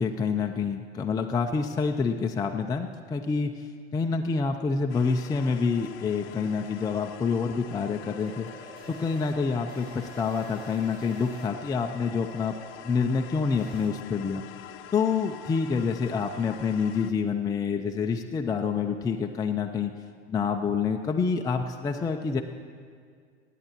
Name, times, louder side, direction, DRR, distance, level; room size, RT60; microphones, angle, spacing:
voice 1, 0.0-3.6 3.9-8.5 8.9-12.5 12.8-14.4 14.9-19.9 20.3-22.4, left 5 dB, 10° left, 3 dB, 0.5 m, -27 dB
sound 1, 4.9-17.1, left 11 dB, 35° left, 0.8 m, -46 dB
sound 2, 4.9-13.9, right 4 dB, 70° right, 1.2 m, -50 dB
24.5 x 9.9 x 3.0 m, 2.1 s
figure-of-eight pair, 85°, 34 cm